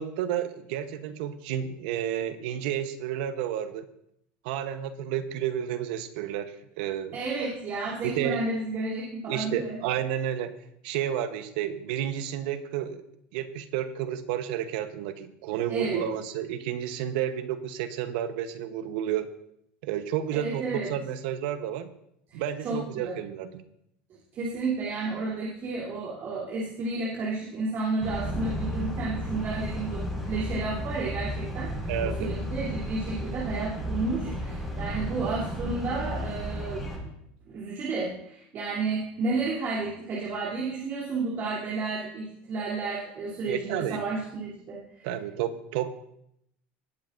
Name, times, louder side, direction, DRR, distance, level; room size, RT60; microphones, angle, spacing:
voice 1, 0.0-3.8 4.4-7.2 8.0-8.4 9.3-10.6 10.8-13.0 13.3-19.3 19.8-21.9 22.3-23.6 31.9-32.3 43.5-44.0 45.0-45.9, right 10 dB, 75° right, 11 dB, 1.0 m, -31 dB
voice 2, 7.1-9.8 15.7-16.0 20.3-20.9 22.3-23.1 24.3-36.8 37.5-45.1, right 3 dB, 45° right, -5 dB, 3.1 m, -32 dB
sound 1, 28.0-37.0, equal, ahead, 4.9 m, -33 dB
18.5 x 8.7 x 2.6 m, 0.76 s
supercardioid pair, 115°, 5 cm